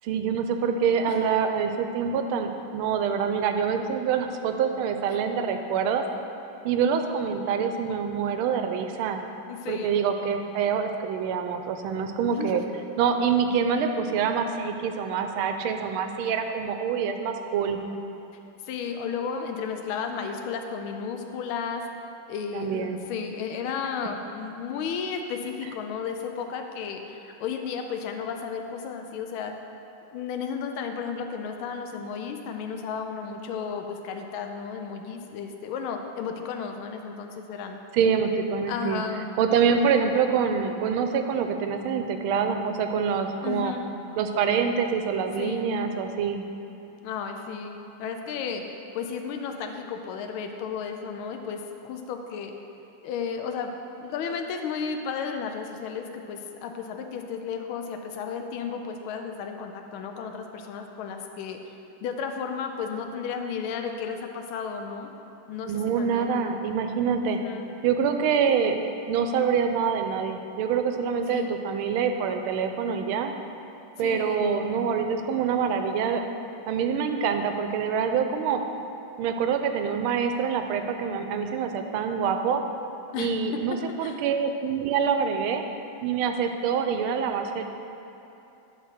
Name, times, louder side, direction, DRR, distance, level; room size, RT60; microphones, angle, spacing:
voice 1, 0.0-6.0 6.6-9.2 9.7-12.6 13.0-17.8 22.5-23.0 37.9-39.0 39.4-43.7 44.2-46.4 65.7-67.4 67.8-73.3 74.0-76.2 76.7-78.6 79.2-82.6 83.2-85.6 86.0-87.6, right 6 dB, 90° right, 6 dB, 1.5 m, -26 dB
voice 2, 9.5-10.0 12.3-12.6 18.6-21.8 22.3-29.5 30.1-37.8 38.7-39.3 43.4-43.9 45.4-45.7 47.0-48.6 48.9-52.5 53.0-53.7 54.0-61.6 62.0-65.1 65.5-66.5 67.2-67.7 71.3-71.6 74.0-74.5 83.1-83.6 84.0-84.3, left 6 dB, 80° left, 4 dB, 1.4 m, -33 dB
9.2 x 3.7 x 6.4 m, 2.9 s
omnidirectional pair, 2.3 m